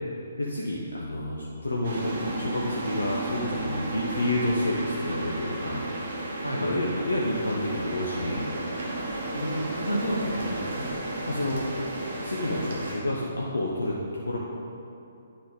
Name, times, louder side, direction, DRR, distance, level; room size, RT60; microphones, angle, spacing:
voice 1, 0.4-5.8 6.6-8.6 11.2-11.7 12.2-14.4, left 1 dB, 70° left, -4 dB, 1.2 m, -29 dB
sound 1, 1.8-12.9, right 1 dB, 45° right, 2.0 m, -33 dB
voice 2, 9.3-10.9 11.3-11.6 12.5-12.7, equal, 85° left, -1 dB, 1.8 m, -31 dB
10.0 x 6.6 x 5.6 m, 2.7 s
figure-of-eight pair, 130°, 0 cm